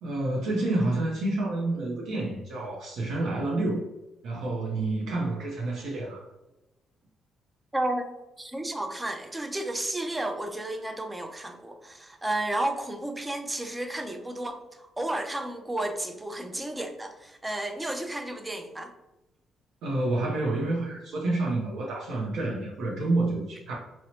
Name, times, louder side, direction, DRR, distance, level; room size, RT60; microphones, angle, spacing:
voice 1, 0.0-3.9 4.2-6.2 19.8-23.7, right 2 dB, 80° right, -3 dB, 0.5 m, -28 dB
voice 2, 7.7-8.0 8.4-18.9, right 1 dB, 15° right, 6 dB, 0.4 m, -32 dB
2.8 x 2.0 x 2.8 m, 0.96 s
cardioid pair, 90°, 0 cm